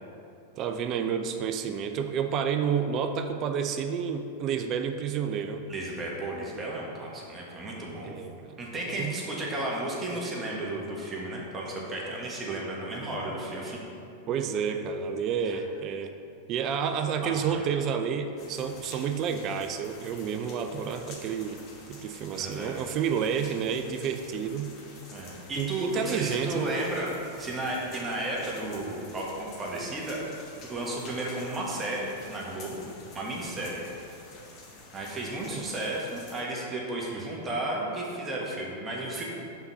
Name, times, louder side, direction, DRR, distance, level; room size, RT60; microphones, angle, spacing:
voice 1, 0.6-5.7 8.0-8.6 9.0-9.2 14.3-16.1 16.5-21.6 21.9-24.7 25.6-26.7 35.5-35.6, right 7 dB, 40° right, 7 dB, 0.4 m, -30 dB
voice 2, 5.7-8.1 8.6-13.8 15.4-15.6 17.2-17.6 22.3-22.8 25.1-30.2 30.6-32.9 33.1-33.8 34.9-39.2, right 1 dB, 20° right, -3 dB, 1.3 m, -33 dB
sound 1, 18.4-36.4, left 2 dB, 40° left, 1.3 m, -49 dB
5.6 x 4.0 x 5.6 m, 2.6 s
hypercardioid pair, 105°, 0 cm